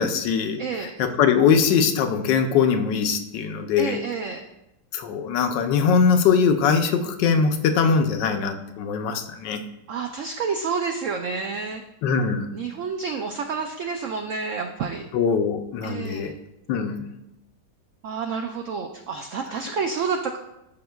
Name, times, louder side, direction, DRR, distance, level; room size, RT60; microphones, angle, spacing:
voice 1, 0.0-0.6 1.0-4.0 4.9-9.6 12.0-12.5 15.1-16.3 16.7-17.0, left 6 dB, 80° left, 7 dB, 1.3 m, -21 dB
voice 2, 0.6-0.9 3.8-4.4 9.9-11.8 12.5-15.1 15.8-16.3 18.0-20.4, right 5 dB, 80° right, 4 dB, 0.6 m, -29 dB
12.5 x 5.7 x 2.3 m, 0.89 s
omnidirectional pair, 1.9 m